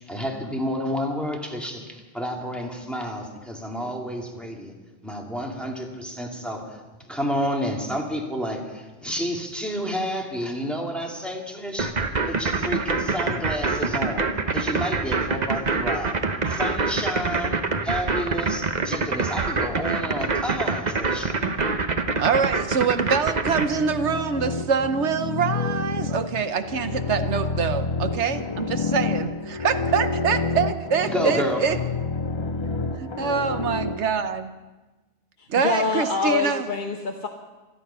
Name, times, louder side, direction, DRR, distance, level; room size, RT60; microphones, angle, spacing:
voice 1, 0.1-4.7 5.0-6.8 7.0-11.9 12.2-16.2 16.5-21.4 31.1-31.7, equal, ahead, 0 dB, 2.1 m, -30 dB
sound 1, 11.8-23.7, right 4 dB, 40° right, 1.0 m, -24 dB
voice 2, 22.2-28.7 28.9-29.3 29.6-31.8 33.0-34.5 35.5-36.7, right 6 dB, 70° right, 10 dB, 1.1 m, -24 dB
sound 2, 23.6-34.0, left 4 dB, 30° left, 0.6 m, -29 dB
voice 3, 35.6-37.3, left 5 dB, 45° left, 1 dB, 1.2 m, -25 dB
26.5 x 9.6 x 5.6 m, 1.2 s
omnidirectional pair, 1.2 m